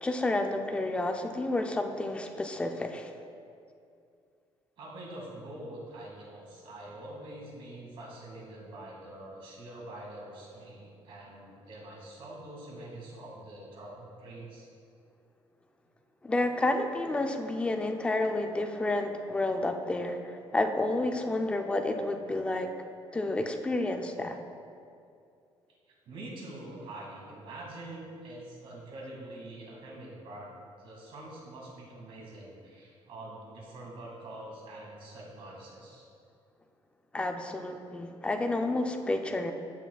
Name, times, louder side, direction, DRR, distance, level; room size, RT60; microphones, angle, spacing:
voice 1, 0.0-3.1 16.2-22.7 23.1-24.4 37.1-39.5, left 2 dB, 10° left, 5 dB, 0.4 m, -30 dB
voice 2, 4.8-14.7 26.1-36.1, right 1 dB, 55° right, -3 dB, 2.0 m, -45 dB
15.0 x 5.8 x 2.3 m, 2.5 s
cardioid pair, 170°, 10 cm